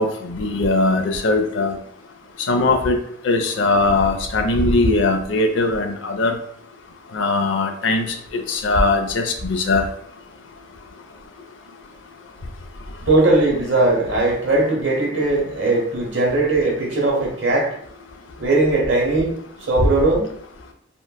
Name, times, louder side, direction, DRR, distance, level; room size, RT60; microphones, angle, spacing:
voice 1, 0.0-1.7 2.5-3.0 3.2-6.3 7.1-8.1 8.3-9.8, left 2 dB, 75° left, 4 dB, 0.5 m, -20 dB
voice 2, 13.1-17.7 18.4-19.3 19.7-20.3, right 2 dB, 65° right, -2 dB, 1.0 m, -19 dB
3.8 x 2.1 x 2.2 m, 0.65 s
head